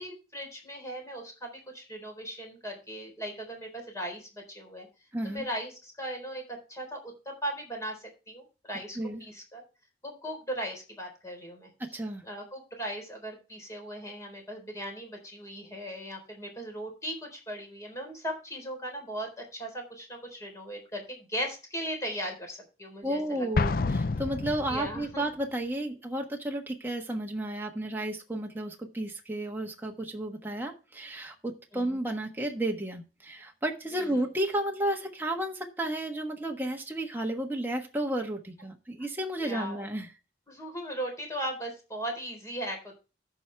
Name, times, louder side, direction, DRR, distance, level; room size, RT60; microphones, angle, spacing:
voice 1, 0.0-4.9 5.2-6.4 6.7-9.6 10.0-11.7 12.2-23.5 24.7-25.2 31.7-32.0 33.9-34.2 39.4-39.9 40.5-43.0, equal, 15° left, 3 dB, 3.9 m, -38 dB
voice 2, 5.1-5.4 9.0-9.2 11.8-12.2 23.0-40.1, right 1 dB, 10° right, 1 dB, 1.3 m, -32 dB
Explosion, 23.5-25.1, left 3 dB, 55° left, 0.5 m, -29 dB
14.5 x 6.0 x 3.4 m, 0.31 s
head